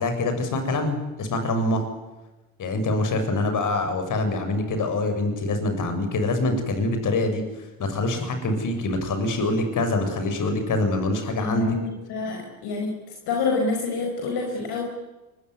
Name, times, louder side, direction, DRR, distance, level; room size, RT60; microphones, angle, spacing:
voice 1, 0.0-1.8 2.6-7.4 7.8-11.8, left 2 dB, 50° left, 7 dB, 7.3 m, -25 dB
voice 2, 11.4-11.8 12.1-13.0 13.3-14.8, left 4 dB, 65° left, 1 dB, 5.4 m, -27 dB
24.5 x 23.5 x 9.7 m, 1.1 s
hypercardioid pair, 70°, 41 cm